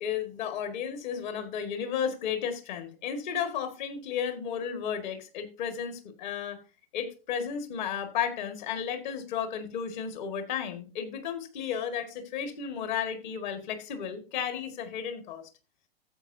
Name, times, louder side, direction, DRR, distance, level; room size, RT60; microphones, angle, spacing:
voice 1, 0.0-6.6 6.9-15.4, left 8 dB, 45° left, 8 dB, 1.8 m, -33 dB
13.0 x 7.7 x 2.7 m, 0.34 s
figure-of-eight pair, 110°, 31 cm